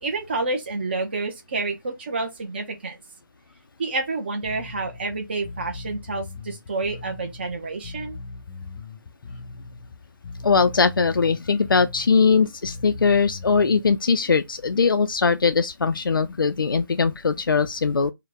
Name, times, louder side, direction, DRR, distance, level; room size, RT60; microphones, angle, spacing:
voice 1, 0.0-3.0 3.8-8.2, right 3 dB, 30° right, 0.6 m, -29 dB
Bass guitar, 4.4-13.9, left 3 dB, 15° left, 0.7 m, -39 dB
voice 2, 10.4-18.1, left 5 dB, 85° left, 0.4 m, -20 dB
4.6 x 2.1 x 3.4 m
figure-of-eight pair, 165°, 11 cm